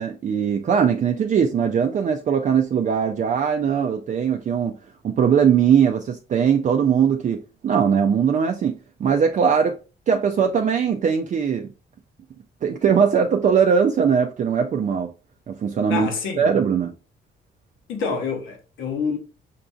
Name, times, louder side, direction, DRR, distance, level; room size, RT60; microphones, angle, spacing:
voice 1, 0.0-4.7 5.0-9.8 10.1-11.7 12.6-15.1 15.5-16.1 16.4-16.9, right 7 dB, 40° right, 0.4 m, -20 dB
voice 2, 15.9-16.5 17.9-19.2, left 5 dB, 80° left, 1.0 m, -27 dB
5.8 x 2.6 x 2.3 m
cardioid pair, 90°, 20 cm